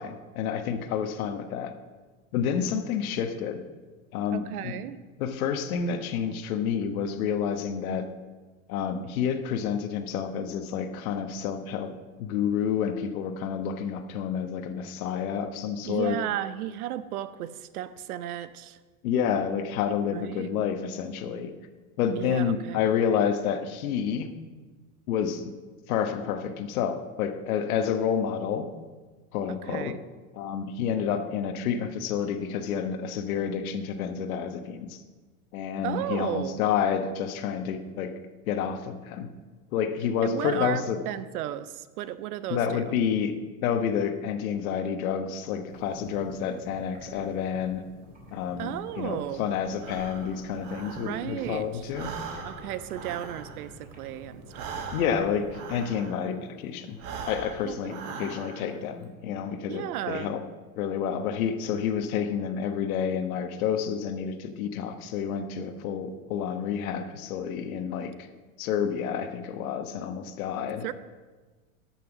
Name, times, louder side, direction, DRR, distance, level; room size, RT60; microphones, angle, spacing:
voice 1, 0.0-1.7 2.3-3.6 4.1-4.8 5.2-8.1 8.7-11.9 12.2-16.2 19.0-21.5 22.0-24.3 25.1-25.5 25.9-28.7 29.3-30.0 30.3-35.0 35.5-38.2 38.4-39.3 39.7-41.0 42.5-43.3 43.6-47.8 48.3-52.1 54.9-57.0 57.2-60.4 60.8-68.3 68.6-70.8, left 7 dB, 75° left, 8 dB, 1.2 m, -29 dB
voice 2, 4.3-5.0 15.8-18.8 20.1-20.5 22.2-22.9 29.5-30.0 35.8-36.6 40.2-42.8 48.6-49.5 51.0-51.8 52.4-54.8 57.7-57.9 59.7-60.3 70.8-70.9, right 12 dB, 85° right, 15 dB, 0.8 m, -34 dB
sound 1, 45.7-55.8, right 1 dB, 20° right, 2.6 m, -48 dB
Breathing, 49.8-51.5 51.8-56.4 56.9-58.8, right 5 dB, 45° right, 1.5 m, -41 dB
13.0 x 6.0 x 6.0 m, 1.3 s
supercardioid pair, 130°, 43 cm